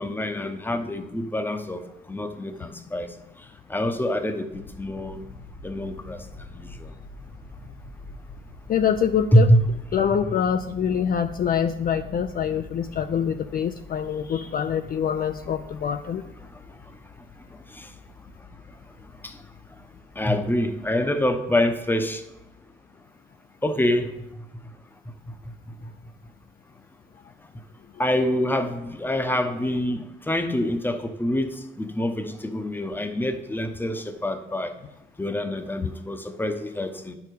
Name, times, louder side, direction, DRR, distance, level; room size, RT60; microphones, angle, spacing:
voice 1, 0.0-1.8 2.1-3.1 3.7-5.2 5.6-6.9 9.3-9.6 17.5-17.9 19.2-19.4 20.2-22.2 23.6-24.1 28.0-34.7 35.2-37.1, equal, 10° left, 7 dB, 0.8 m, -25 dB
sound 1, 4.5-22.6, left 2 dB, 90° left, 1.2 m, -46 dB
voice 2, 8.7-9.5 9.9-16.2, left 8 dB, 45° left, 8 dB, 0.4 m, -25 dB
9.4 x 4.7 x 5.2 m, 0.94 s
cardioid pair, 90°, 20 cm